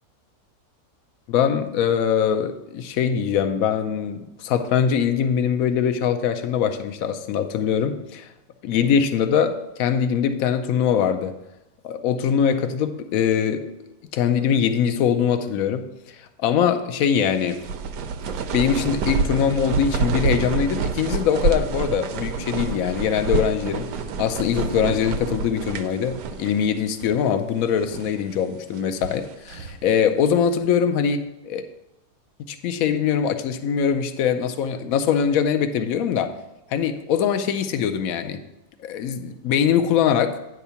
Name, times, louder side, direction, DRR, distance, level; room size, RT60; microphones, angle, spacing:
voice 1, 1.3-8.3 8.6-11.3 11.8-13.7 14.1-15.9 16.4-17.6 18.5-23.9 24.2-31.6 32.5-36.3 36.7-38.4 38.8-40.4, left 8 dB, 65° left, 8 dB, 1.0 m, -22 dB
sound 1, 17.2-26.7 27.0-27.1 27.7-28.2 28.7-29.8, right 4 dB, 90° right, 1.3 m, -27 dB
9.6 x 3.6 x 6.8 m, 0.95 s
omnidirectional pair, 1.7 m